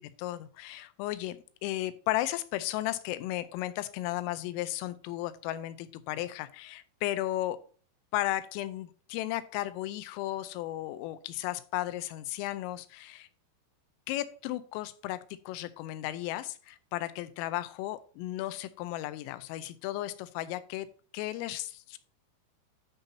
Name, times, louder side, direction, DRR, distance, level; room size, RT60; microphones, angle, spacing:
voice 1, 0.2-1.4 1.6-7.6 8.1-13.3 14.1-20.9 21.1-22.0, left 15 dB, 85° left, 14 dB, 3.2 m, -34 dB
12.5 x 5.6 x 2.7 m, 0.41 s
omnidirectional pair, 6.0 m